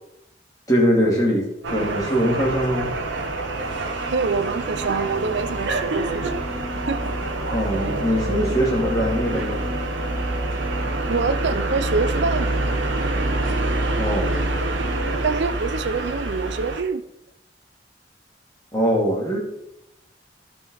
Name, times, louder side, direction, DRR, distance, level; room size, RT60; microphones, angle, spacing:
voice 1, 0.7-2.9 7.5-9.6 14.0-14.4 18.7-19.4, equal, 20° left, -3 dB, 2.5 m, -22 dB
sound 1, 1.6-16.8, right 2 dB, 85° right, 1.2 m, -26 dB
sound 2, 2.0-15.3, left 1 dB, 10° right, 1.6 m, -38 dB
voice 2, 4.1-6.5 6.9-7.1 11.1-12.7 15.2-17.0, right 4 dB, 70° right, 12 dB, 0.5 m, -26 dB
13.5 x 5.3 x 3.9 m, 0.82 s
head